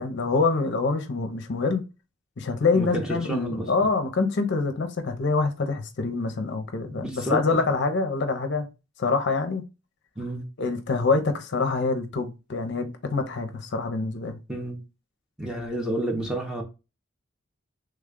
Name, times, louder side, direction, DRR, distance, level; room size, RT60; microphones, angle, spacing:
voice 1, 0.0-1.8 2.4-8.7 9.0-9.6 10.6-14.4, left 4 dB, 55° left, 0.5 m, -25 dB
voice 2, 2.7-3.7 7.0-7.6 10.2-10.4 14.5-14.8 15.4-16.6, right 1 dB, 5° right, 0.6 m, -30 dB
3.3 x 2.2 x 3.6 m
head